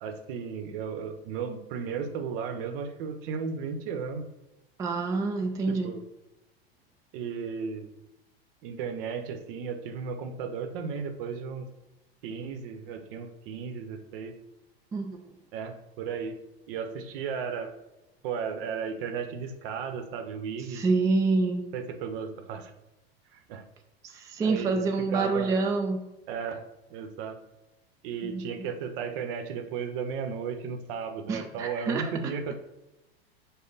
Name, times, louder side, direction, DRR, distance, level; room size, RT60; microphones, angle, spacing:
voice 1, 0.0-4.3 5.7-6.0 7.1-7.9 8.6-11.7 12.2-14.3 15.5-16.4 16.7-17.7 18.2-20.8 21.7-22.7 23.3-23.6 24.4-25.5 26.3-26.6 26.9-27.4 28.0-32.5, right 6 dB, 60° right, 7 dB, 0.8 m, -35 dB
voice 2, 4.8-5.9 14.9-15.2 20.7-21.6 24.0-26.0 28.2-28.4 31.3-32.1, right 3 dB, 10° right, 3 dB, 0.3 m, -27 dB
5.1 x 2.1 x 3.9 m, 0.98 s
hypercardioid pair, 105°, 31 cm